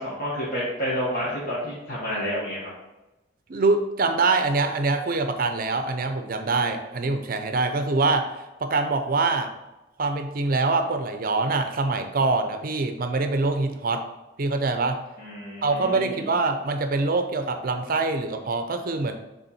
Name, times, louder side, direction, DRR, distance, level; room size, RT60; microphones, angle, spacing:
voice 1, 0.0-2.7 15.2-16.2, equal, 50° left, -7 dB, 1.5 m, -30 dB
voice 2, 3.5-8.3 8.6-9.5 10.0-14.0 14.4-15.0 15.6-19.1, right 3 dB, 50° right, 7 dB, 0.6 m, -24 dB
7.3 x 3.5 x 4.1 m, 1.0 s
head